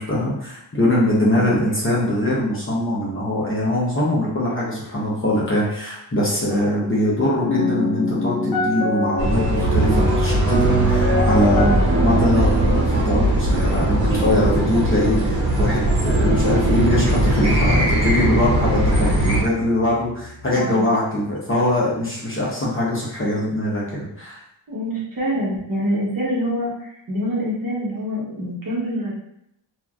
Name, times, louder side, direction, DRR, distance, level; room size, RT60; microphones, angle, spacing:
voice 1, 0.0-11.7 12.0-24.4, left 1 dB, 25° left, -6 dB, 0.8 m, -22 dB
sound 1, 6.8-20.7, left 1 dB, 55° left, 0.9 m, -27 dB
sound 2, 9.2-19.4, right 1 dB, 70° right, 1.1 m, -19 dB
voice 2, 19.0-19.3 20.7-21.0 24.7-29.1, equal, 45° right, -5 dB, 1.1 m, -26 dB
2.9 x 2.5 x 2.3 m, 0.78 s
wide cardioid pair, 100°, 47 cm